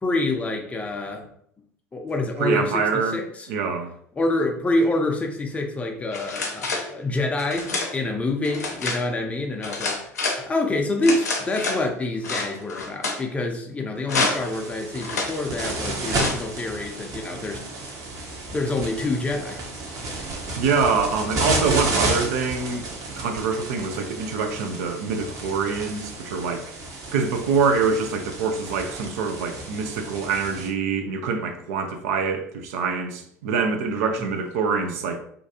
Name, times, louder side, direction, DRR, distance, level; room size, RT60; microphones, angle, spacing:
voice 1, 0.0-1.3 1.9-3.5 4.2-17.6 18.5-19.6 34.2-34.3, left 2 dB, 15° left, 0.5 m, -27 dB
voice 2, 2.4-3.2 3.5-3.9 20.6-26.7 26.9-35.2, right 5 dB, 65° right, 0.4 m, -25 dB
sound 1, 6.1-6.9 7.4-7.9 8.4-9.0 9.6-10.4 11.0-11.8 12.2-13.2 14.0-14.5 15.0-15.3 16.1-16.5, left 3 dB, 80° left, 0.6 m, -27 dB
sound 2, 14.1-30.7, right 2 dB, 40° right, 0.8 m, -32 dB
2.5 x 2.3 x 2.7 m
figure-of-eight pair, 75°, 9 cm